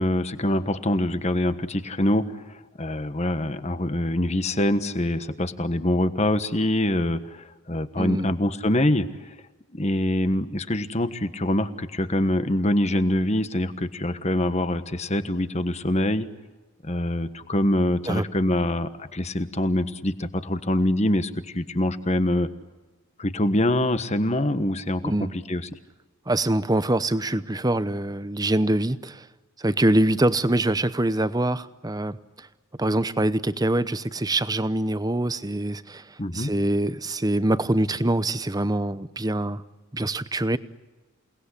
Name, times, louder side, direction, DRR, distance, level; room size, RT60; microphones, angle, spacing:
voice 1, 0.0-9.1 9.7-16.3 16.8-22.5 23.2-25.1 25.5-25.7 36.2-36.5, left 1 dB, 30° left, 11 dB, 1.3 m, -24 dB
voice 2, 8.0-8.3 18.1-18.3 25.0-25.3 26.3-29.3 29.6-32.5 32.8-36.0 36.3-39.6 39.9-40.6, right 1 dB, 15° right, 14 dB, 0.8 m, -24 dB
29.0 x 19.5 x 9.9 m, 1.2 s
head